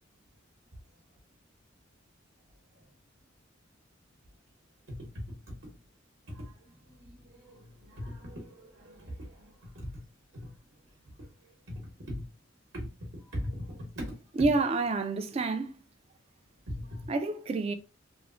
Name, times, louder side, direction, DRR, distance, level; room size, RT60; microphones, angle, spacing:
voice 1, 4.9-5.7 6.3-6.5 7.0-9.9 10.3-10.5 11.7-11.8 12.1-12.2 12.7-14.2 16.7-17.1, equal, 65° right, 0.9 m, -40 dB
voice 2, 14.4-15.8 17.1-17.7, right 3 dB, 30° right, 0.3 m, -28 dB
2.9 x 2.0 x 2.5 m
head